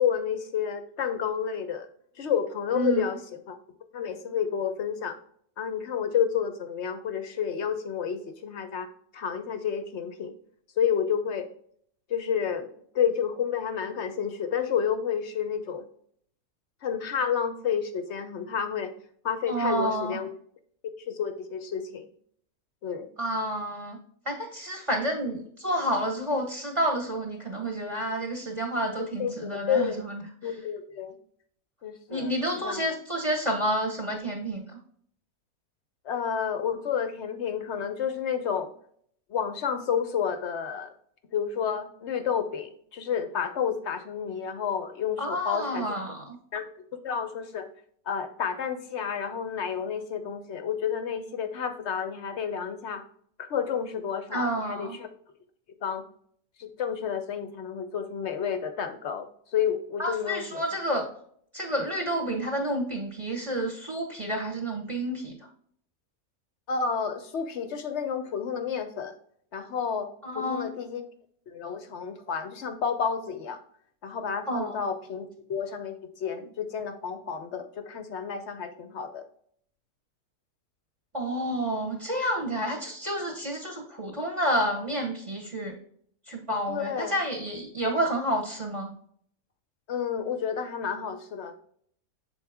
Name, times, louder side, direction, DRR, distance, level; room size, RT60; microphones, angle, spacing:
voice 1, 0.0-1.9 2.2-3.6 3.9-5.2 5.6-8.9 9.1-10.3 10.8-11.5 12.1-15.8 16.8-18.9 19.2-20.3 21.1-22.1 22.8-23.1 29.2-30.0 30.4-31.2 31.8-32.9 36.0-38.7 39.3-40.9 41.3-46.0 46.5-46.7 47.0-47.7 48.1-53.0 53.4-55.1 55.8-56.0 56.6-60.6 66.7-69.1 69.5-71.1 71.5-73.6 74.0-79.2 86.7-87.2 87.8-87.9 89.9-91.6, left 7 dB, 60° left, 8 dB, 0.8 m, -30 dB
voice 2, 2.7-3.1 19.5-20.2 23.2-24.0 24.2-30.6 32.1-34.6 45.2-46.4 54.3-55.0 60.0-61.1 61.5-65.3 70.2-70.7 74.5-74.8 81.1-85.8 86.3-88.9, right 1 dB, 25° right, 1 dB, 1.0 m, -29 dB
7.0 x 4.1 x 3.4 m, 0.63 s
omnidirectional pair, 1.6 m